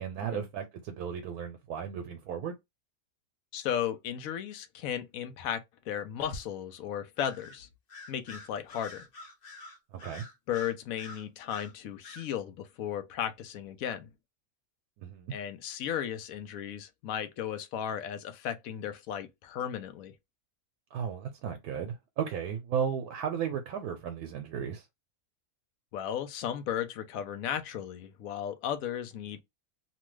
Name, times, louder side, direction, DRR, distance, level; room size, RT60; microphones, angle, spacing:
voice 1, 0.0-2.5 9.9-10.2 15.0-15.3 20.9-24.9, right 7 dB, 85° right, 1.1 m, -35 dB
voice 2, 3.5-7.7 8.1-9.0 10.5-14.1 15.3-20.1 25.9-29.4, left 9 dB, 70° left, 1.0 m, -35 dB
Bird vocalization bird call bird song, 7.2-7.6 7.9-11.7 12.0-12.3, left 2 dB, 45° left, 0.9 m, -47 dB
3.0 x 2.2 x 3.1 m
omnidirectional pair, 1.6 m